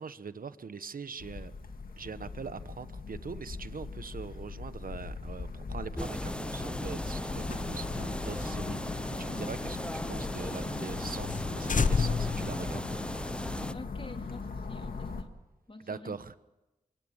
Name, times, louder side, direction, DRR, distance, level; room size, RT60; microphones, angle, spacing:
voice 1, 0.0-1.5 2.0-13.7 15.8-16.4, right 5 dB, 75° right, 14 dB, 1.1 m, -42 dB
sound 1, 1.2-15.2, left 4 dB, 90° left, 1.9 m, -40 dB
sound 2, 6.0-13.7, left 1 dB, 5° left, 0.8 m, -37 dB
sound 3, 7.4-10.2 10.5-10.6 10.9-11.0 11.3-11.4 11.7-13.4, left 5 dB, 65° left, 0.8 m, -32 dB
voice 2, 9.2-9.5 13.7-15.3 15.7-16.2, left 2 dB, 35° left, 6 dB, 2.7 m, -47 dB
24.5 x 23.0 x 7.3 m, 0.99 s
cardioid pair, 40°, 15 cm